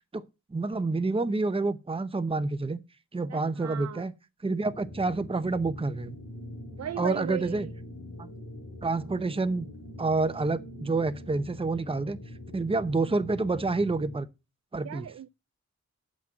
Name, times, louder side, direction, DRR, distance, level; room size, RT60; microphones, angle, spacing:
voice 1, 0.5-2.8 3.1-4.1 4.4-6.2 7.0-7.7 8.2-8.3 8.8-9.7 10.0-12.2 12.5-14.3 14.7-15.1, right 3 dB, 20° right, 0.8 m, -28 dB
voice 2, 3.3-4.1 6.7-7.7 14.8-15.3, right 9 dB, 60° right, 0.5 m, -37 dB
sound 1, 4.6-14.2, left 1 dB, 85° left, 3.4 m, -44 dB
7.4 x 6.0 x 7.7 m
cardioid pair, 50°, 30 cm